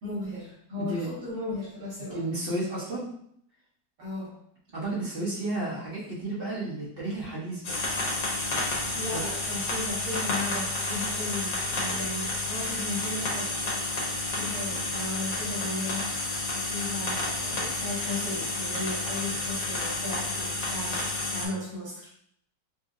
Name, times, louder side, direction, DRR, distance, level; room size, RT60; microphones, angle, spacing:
voice 1, 0.0-2.2 4.0-4.3 8.9-13.6 14.3-16.1 16.5-21.1 21.3-22.1, left 2 dB, 85° right, -8 dB, 2.3 m, -36 dB
voice 2, 0.8-1.1 2.1-3.1 4.7-7.7 9.1-9.2, right 2 dB, 50° right, -7 dB, 0.7 m, -32 dB
sound 1, 7.6-21.5, left 2 dB, 55° left, 1.3 m, -30 dB
5.3 x 2.0 x 2.4 m, 0.68 s
omnidirectional pair, 2.0 m